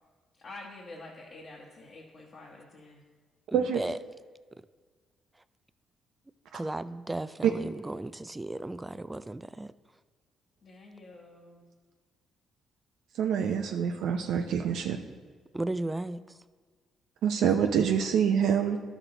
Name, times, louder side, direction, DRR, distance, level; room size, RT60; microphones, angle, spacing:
voice 1, 0.4-3.0 10.6-11.7, left 2 dB, 50° left, 1.3 m, -47 dB
voice 2, 3.5-4.0 6.5-9.7 15.5-16.2, right 2 dB, 15° right, 0.3 m, -35 dB
voice 3, 13.2-15.0 17.2-18.8, right 8 dB, 80° right, 0.6 m, -26 dB
12.0 x 6.1 x 3.9 m
cardioid pair, 90°, 0 cm